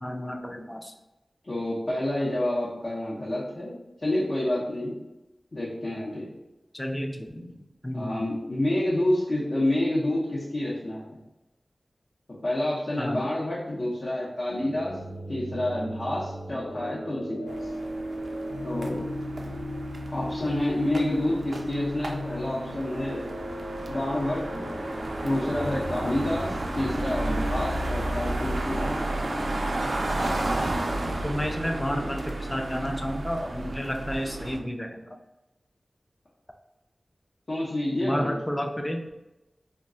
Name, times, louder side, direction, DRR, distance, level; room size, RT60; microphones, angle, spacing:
voice 1, 0.0-0.9 6.7-7.5 7.8-8.3 13.0-13.2 31.2-35.0 38.0-39.1, equal, 15° left, 4 dB, 0.4 m, -31 dB
voice 2, 1.4-4.9 5.5-6.3 7.9-11.2 12.4-15.0 15.3-17.7 18.6-19.0 20.1-23.2 23.9-24.6 25.2-28.9 37.5-38.3, left 1 dB, 55° left, -7 dB, 0.8 m, -28 dB
sound 1, 14.5-30.5, equal, 90° left, 1.0 m, -36 dB
sound 2, 17.5-34.6, right 2 dB, 70° right, 0.3 m, -33 dB
2.3 x 2.2 x 3.7 m, 0.96 s
wide cardioid pair, 55°, 0 cm